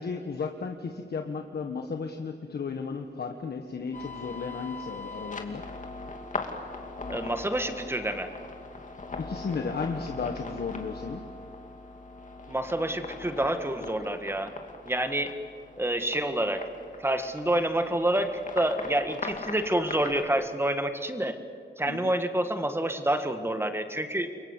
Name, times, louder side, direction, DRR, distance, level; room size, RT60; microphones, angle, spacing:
voice 1, 0.0-5.6 9.2-11.2 21.9-22.1, left 5 dB, 60° left, 4 dB, 1.4 m, -34 dB
sound 1, 3.9-20.2, left 3 dB, 45° left, 2.6 m, -40 dB
voice 2, 7.1-8.3 12.5-14.5 14.9-15.3 15.8-16.6 17.0-21.4 21.8-24.3, right 1 dB, 15° right, 8 dB, 1.8 m, -28 dB
29.5 x 23.5 x 8.2 m, 2.3 s
wide cardioid pair, 135°, 19 cm